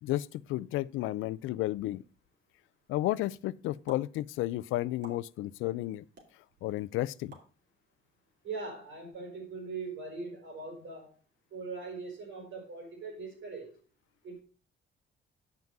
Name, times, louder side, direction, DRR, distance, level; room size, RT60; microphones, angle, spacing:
voice 1, 0.0-2.0 2.9-6.0 6.6-7.3, left 16 dB, 90° left, 0.5 m, -32 dB
sound 1, 3.9-4.0 5.0-5.2 6.2-6.3 7.3-7.5, right 2 dB, 60° right, 3.0 m, -48 dB
voice 2, 8.4-11.1 11.5-13.7 14.2-14.4, right 4 dB, 75° right, 5.3 m, -41 dB
8.9 x 5.9 x 5.3 m
cardioid pair, 90°, 20 cm